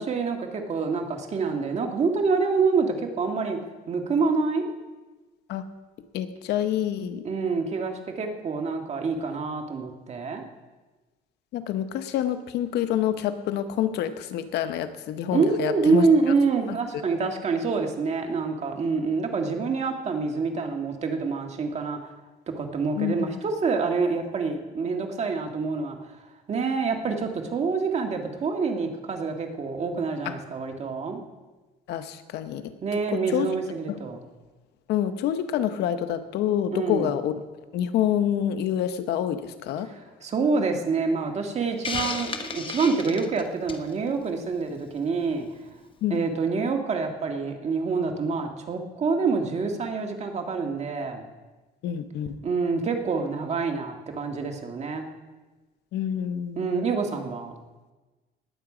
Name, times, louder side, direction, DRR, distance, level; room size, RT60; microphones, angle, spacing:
voice 1, 0.0-3.6 3.9-4.7 7.2-10.4 15.3-22.1 22.5-26.0 26.5-31.2 32.8-34.2 36.7-37.1 40.2-45.5 46.1-51.2 52.4-55.1 56.6-57.6, right 4 dB, 40° right, 3 dB, 1.8 m, -26 dB
voice 2, 6.1-7.2 11.5-16.1 23.0-23.4 30.2-30.4 31.9-32.7 33.3-33.5 33.9-34.0 34.9-37.3 37.7-39.9 46.0-46.2 51.8-52.4 55.9-56.7, left 10 dB, 80° left, 10 dB, 0.9 m, -27 dB
Hiss, 41.8-43.9, left 5 dB, 30° left, 1.0 m, -32 dB
19.0 x 8.0 x 5.0 m, 1.2 s
cardioid pair, 110°, 17 cm